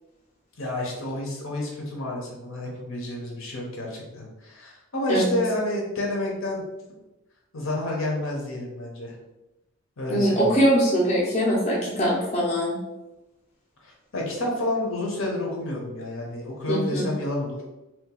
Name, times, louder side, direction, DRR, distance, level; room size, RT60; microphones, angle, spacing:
voice 1, 0.6-6.6 7.5-9.1 10.0-10.6 13.8-17.6, left 1 dB, 70° left, -2 dB, 0.9 m, -30 dB
voice 2, 10.1-12.8 16.7-17.1, equal, 35° left, -5 dB, 0.7 m, -22 dB
2.8 x 2.5 x 3.8 m, 1.0 s
head